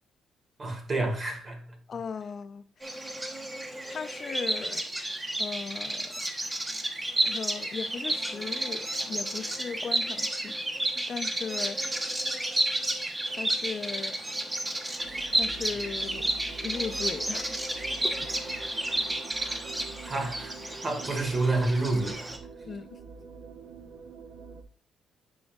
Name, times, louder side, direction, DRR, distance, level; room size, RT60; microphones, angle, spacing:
voice 1, 0.6-1.6 19.4-19.6 20.0-22.3, right 2 dB, 35° right, 2.0 m, -29 dB
voice 2, 1.9-3.0 3.9-4.8 5.4-6.1 7.2-10.5 11.0-12.1 13.3-14.2 15.3-16.3 16.6-17.5 18.0-18.1 22.7-23.0, left 6 dB, 50° left, 0.6 m, -37 dB
Bird vocalization bird call bird song, 2.8-22.4, right 1 dB, 20° right, 1.2 m, -31 dB
sound 1, 15.0-24.6, right 5 dB, 65° right, 0.9 m, -46 dB
9.6 x 5.0 x 2.4 m
cardioid pair, 90°, 0 cm